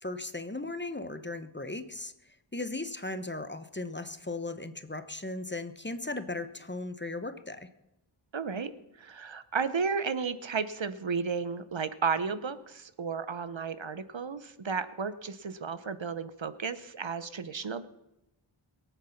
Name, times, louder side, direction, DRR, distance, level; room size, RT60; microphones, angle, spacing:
voice 1, 0.0-2.1 2.5-7.7, left 2 dB, 20° left, 10 dB, 0.9 m, -37 dB
voice 2, 8.3-8.7 9.0-17.9, right 5 dB, 65° right, 13 dB, 0.9 m, -33 dB
22.5 x 8.1 x 5.8 m, 0.92 s
wide cardioid pair, 55°, 50 cm